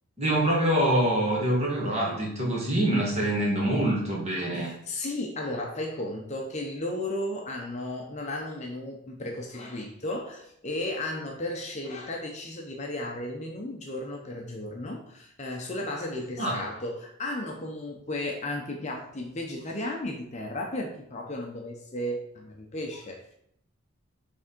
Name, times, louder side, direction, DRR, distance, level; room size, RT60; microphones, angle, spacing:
voice 1, 0.2-4.7 16.4-16.5, right 1 dB, 30° right, -3 dB, 1.7 m, -25 dB
voice 2, 4.5-23.3, left 1 dB, 30° left, 1 dB, 0.7 m, -34 dB
6.2 x 3.5 x 4.4 m, 0.74 s
head